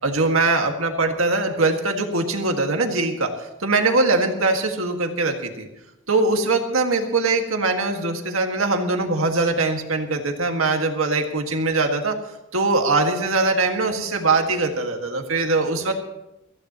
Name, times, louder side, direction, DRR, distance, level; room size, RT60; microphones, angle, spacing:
voice 1, 0.0-5.7 6.1-12.2 12.5-15.9, right 3 dB, 85° right, 3 dB, 1.9 m, -22 dB
23.5 x 15.5 x 3.1 m, 0.92 s
head